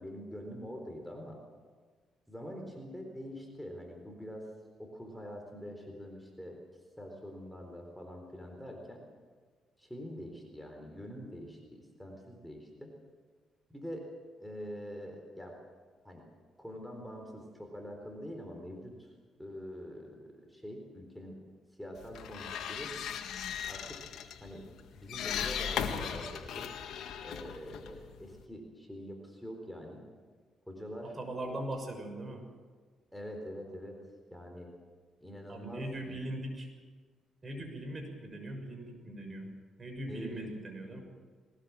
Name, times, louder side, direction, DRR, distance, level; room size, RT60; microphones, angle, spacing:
voice 1, 0.0-1.4 2.3-4.5 4.8-6.6 7.0-9.0 9.8-12.9 13.7-14.1 14.4-15.6 16.0-16.2 16.6-19.1 19.4-21.4 21.8-22.9 23.7-24.0 24.4-24.7 24.9-26.7 27.2-30.1 30.7-31.1 33.1-34.0 34.3-34.7 35.2-36.2 39.2-39.3 40.1-40.5, equal, ahead, 2 dB, 4.2 m, -45 dB
sound 1, 22.0-28.4, left 8 dB, 75° left, 1.9 m, -38 dB
voice 2, 31.1-32.4 35.5-36.7 37.4-39.5 39.8-41.0, right 1 dB, 30° right, 4 dB, 6.4 m, -40 dB
21.5 x 19.5 x 7.6 m, 1.5 s
cardioid pair, 90°, 0 cm